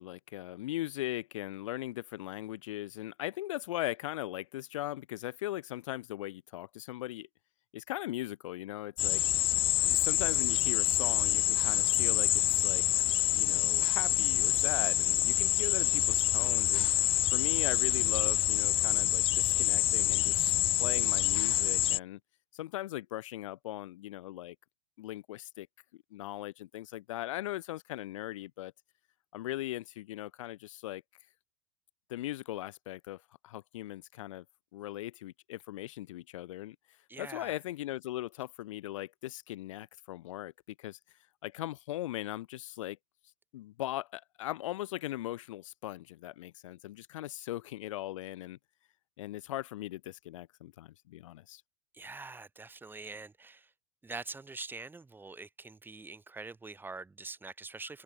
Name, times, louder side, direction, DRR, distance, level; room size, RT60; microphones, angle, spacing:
voice 1, 0.0-7.3 7.7-9.2 9.8-12.8 13.3-16.9 17.3-20.5 20.8-22.2 22.5-24.5 25.0-25.7 26.1-28.7 29.3-31.0 32.1-34.4 34.7-36.8 37.2-40.5 40.8-41.0 41.4-43.0 43.5-48.6 49.2-51.6, left 15 dB, 70° left, 1.2 m, -39 dB
sound 1, 9.0-22.0, left 15 dB, 35° left, 0.5 m, -27 dB
voice 2, 37.1-37.6 51.9-53.7 54.0-58.0, right 3 dB, 10° right, 6.3 m, -44 dB
hypercardioid pair, 105°, 17 cm